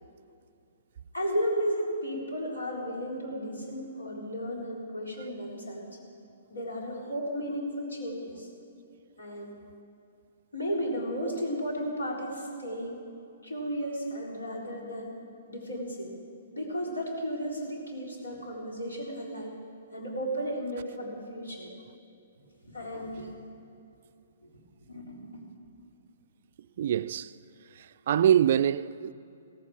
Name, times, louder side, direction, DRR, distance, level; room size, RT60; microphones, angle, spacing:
voice 1, 1.1-5.8 6.5-8.5 9.2-9.5 10.5-13.0 13.4-15.2 15.5-16.2 16.5-19.5 19.9-21.7 22.7-23.3 24.4-24.5 24.8-25.4, equal, 80° left, 3.9 m, -34 dB
voice 2, 26.8-27.3 28.1-29.1, right 10 dB, 55° right, 0.4 m, -24 dB
16.0 x 14.5 x 4.9 m
figure-of-eight pair, 120°, 0 cm